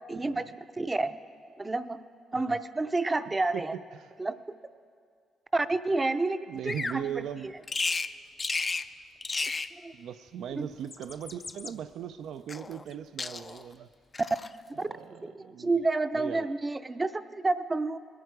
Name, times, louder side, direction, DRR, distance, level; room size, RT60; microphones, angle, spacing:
voice 1, 0.1-1.2 1.6-2.0 2.3-3.7 4.2-4.4 5.5-7.5 9.7-9.9 10.6-10.7 14.8-14.9 15.3-18.0, right 3 dB, 20° right, 11 dB, 0.5 m, -30 dB
voice 2, 6.5-7.5 9.9-13.9 14.8-15.7 16.1-16.5, right 9 dB, 75° right, 10 dB, 0.3 m, -39 dB
Bird vocalization bird call bird song, 6.7-7.0 7.7-8.1 8.4-8.9 9.2-9.7 10.7-11.7 12.5-12.9 13.2-13.7 14.1-14.5, left 3 dB, 30° left, 0.4 m, -33 dB
20.5 x 9.1 x 4.7 m, 2.2 s
cardioid pair, 90°, 0 cm